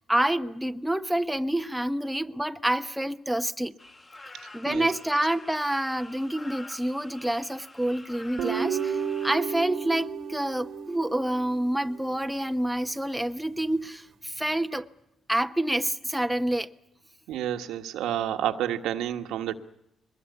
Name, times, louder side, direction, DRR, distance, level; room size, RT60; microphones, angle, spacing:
voice 1, 0.0-3.8 4.5-14.9 15.3-16.7, right 1 dB, 5° right, 1.0 m, -28 dB
sound 1, 3.8-9.3, left 2 dB, 30° left, 3.7 m, -47 dB
Guitar, 8.4-11.7, right 7 dB, 70° right, 1.5 m, -32 dB
voice 2, 17.3-19.5, right 11 dB, 85° right, 1.5 m, -29 dB
23.0 x 21.0 x 8.3 m
cardioid pair, 90°, 0 cm